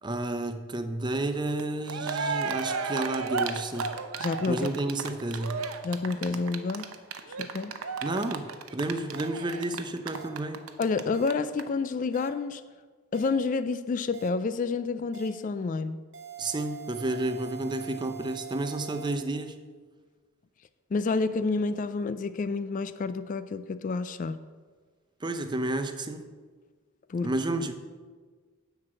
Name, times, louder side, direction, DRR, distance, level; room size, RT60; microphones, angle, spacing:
voice 1, 0.0-4.0 4.5-5.6 8.0-10.6 16.4-19.6 25.2-26.3 27.2-27.7, right 2 dB, 20° right, 8 dB, 0.6 m, -31 dB
Cheering, 1.6-1.7 1.9-11.0 11.3-11.4 11.6-11.7, right 5 dB, 85° right, 0.8 m, -33 dB
voice 2, 4.2-4.7 5.8-6.9 7.4-7.8 10.8-12.6 13.1-16.0 20.9-24.4 27.1-27.3, left 4 dB, 40° left, 12 dB, 0.3 m, -29 dB
sound 1, 8.1-8.3 9.1-9.3 10.1-10.3 11.1-11.3 12.1-12.3 13.1-13.3 14.1-14.3 15.1-15.3 16.1-19.1, right 9 dB, 60° right, 1.1 m, -43 dB
10.0 x 4.7 x 7.5 m, 1.5 s
head